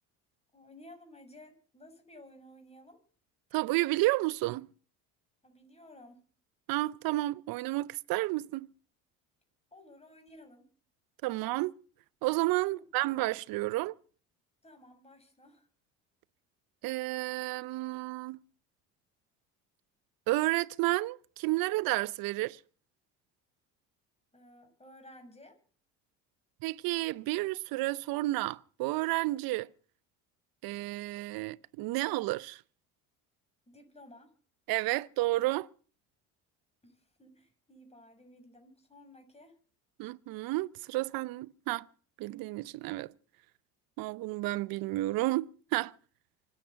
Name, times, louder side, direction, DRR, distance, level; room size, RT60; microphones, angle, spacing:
voice 1, 0.5-3.0 5.4-6.2 9.7-10.7 12.7-12.9 14.6-15.7 24.3-25.6 33.7-34.3 36.8-39.6, left 1 dB, 15° left, 7.0 m, -55 dB
voice 2, 3.5-4.7 6.7-8.7 11.2-11.7 12.2-13.9 16.8-18.4 20.3-22.6 26.6-29.7 30.6-32.6 34.7-35.7 40.0-41.9 42.2-43.1 44.0-45.9, right 19 dB, 65° right, 0.8 m, -31 dB
25.5 x 9.3 x 5.8 m
supercardioid pair, 80°, 38 cm